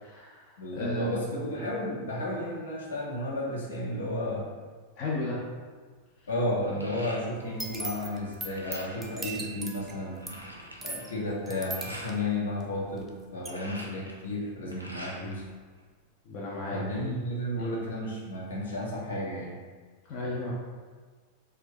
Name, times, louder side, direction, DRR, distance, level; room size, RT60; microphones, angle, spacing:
voice 1, 0.0-1.3 5.0-5.4 15.2-15.3 16.3-16.8 17.6-17.7 20.1-20.5, left 1 dB, 40° left, -5 dB, 0.5 m, -34 dB
voice 2, 0.6-4.5 6.3-10.4 10.8-15.4 16.7-19.6, left 1 dB, 70° left, -5 dB, 0.8 m, -33 dB
sound 1, 5.9-7.7 8.0-9.2 9.6-9.7 9.9-12.2 13.2-15.4 15.8-16.7, equal, 90° right, 0.4 m, -45 dB
sound 2, 7.4-13.1 13.4-13.5, right 2 dB, 10° right, 0.4 m, -40 dB
2.5 x 2.2 x 3.7 m, 1.5 s
figure-of-eight pair, 90°, 0 cm